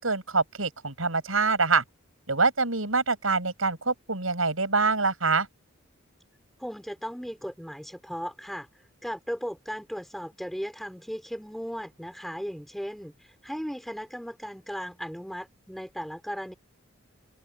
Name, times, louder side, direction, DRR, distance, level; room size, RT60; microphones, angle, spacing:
voice 1, 0.0-1.8 2.3-5.5, right 4 dB, 75° right, 7.0 m, -25 dB
voice 2, 6.6-16.5, equal, ahead, 4.9 m, -36 dB
open air
head